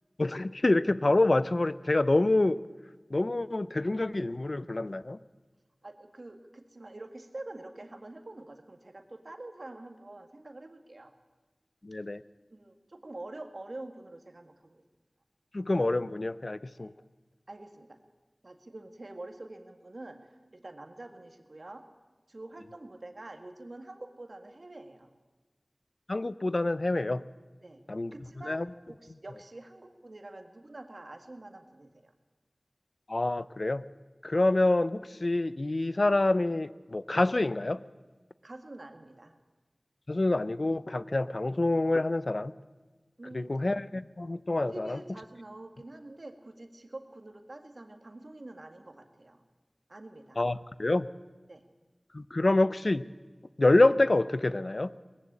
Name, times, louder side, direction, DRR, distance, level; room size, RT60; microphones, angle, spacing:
voice 1, 0.2-2.6 3.1-5.2 11.8-12.2 15.5-16.9 26.1-27.2 27.9-28.1 28.4-28.7 33.1-33.8 34.2-37.8 40.1-42.5 43.3-45.0 50.4-51.1 52.1-53.0 53.6-54.9, left 2 dB, 60° left, 16 dB, 0.6 m, -27 dB
voice 2, 5.8-11.1 12.5-14.8 16.8-16.9 17.5-18.0 18.4-21.9 22.3-25.1 27.6-27.8 28.1-32.1 38.4-39.3 43.2-43.6 44.7-49.4 49.9-50.4 51.5-51.6, right 2 dB, 65° right, 7 dB, 1.9 m, -46 dB
20.0 x 15.5 x 8.8 m, 1.3 s
wide cardioid pair, 45°, 0 cm